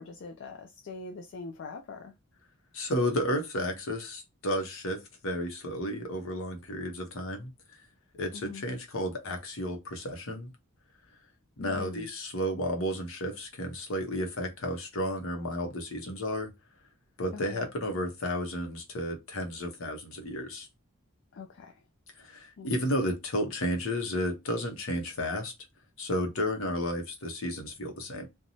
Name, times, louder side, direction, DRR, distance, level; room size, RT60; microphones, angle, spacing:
voice 1, 0.0-2.1 8.3-8.6 11.6-12.1 17.3-17.7 21.3-21.8 22.6-22.7, left 4 dB, 60° left, 0.4 m, -43 dB
voice 2, 2.7-7.5 8.1-10.5 11.6-16.5 17.2-20.7 22.2-25.5 26.0-28.3, equal, 75° left, 0.8 m, -32 dB
2.6 x 2.2 x 2.8 m
head